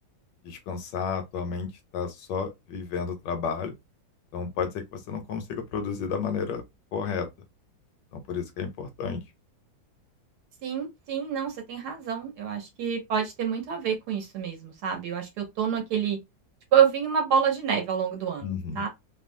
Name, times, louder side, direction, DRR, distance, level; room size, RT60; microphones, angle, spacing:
voice 1, 0.4-3.7 4.3-6.6 6.9-7.3 8.1-9.2 18.4-18.8, left 6 dB, 75° left, 1.1 m, -32 dB
voice 2, 10.6-16.2 16.7-18.9, right 8 dB, 70° right, 1.1 m, -27 dB
3.1 x 2.2 x 2.5 m
omnidirectional pair, 2.1 m